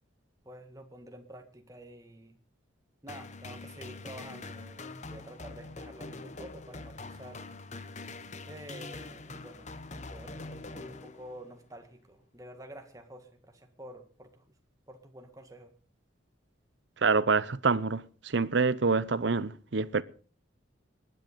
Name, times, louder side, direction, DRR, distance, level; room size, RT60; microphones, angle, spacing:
voice 1, 0.4-2.4 3.0-7.5 8.4-14.5 14.9-15.7, right 1 dB, 15° right, 1.8 m, -49 dB
sound 1, 3.1-11.6, left 3 dB, 35° left, 1.0 m, -44 dB
voice 2, 17.0-20.0, right 4 dB, 65° right, 0.7 m, -26 dB
19.5 x 10.0 x 5.2 m
head